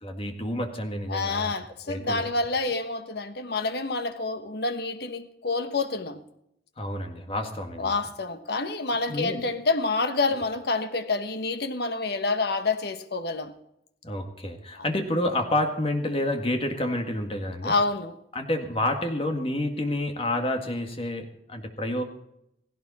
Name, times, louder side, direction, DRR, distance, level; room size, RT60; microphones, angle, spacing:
voice 1, 0.0-1.5 1.9-2.3 6.8-7.9 9.1-9.4 14.0-17.7 18.3-22.0, left 1 dB, 30° left, 1.9 m, -29 dB
voice 2, 1.1-6.2 7.8-13.5 14.8-14.9 17.6-18.2, left 3 dB, 60° left, 1.2 m, -28 dB
16.5 x 16.5 x 4.2 m
head